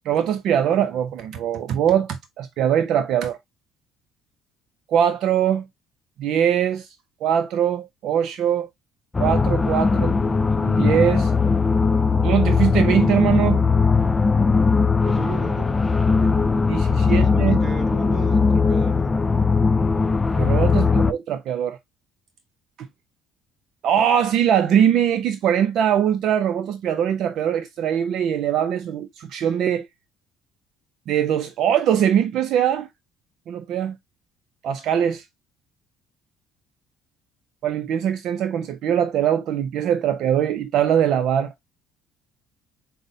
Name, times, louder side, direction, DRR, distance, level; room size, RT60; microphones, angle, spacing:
voice 1, 0.1-3.4 4.9-5.7 6.2-6.9 7.2-8.7 9.2-10.2 10.6-11.3 12.2-13.6 16.7-17.6 20.3-21.8 22.8-22.9 23.8-29.9 31.1-32.9 33.5-34.0 34.6-35.2 37.6-41.5, right 9 dB, 65° right, 0.4 m, -22 dB
sound 1, 9.1-21.1, left 4 dB, 25° left, 0.4 m, -19 dB
voice 2, 15.0-15.7 16.2-16.3 17.0-19.0 20.7-21.0, right 5 dB, 35° right, 1.1 m, -36 dB
5.1 x 2.1 x 2.6 m
supercardioid pair, 75°, 0 cm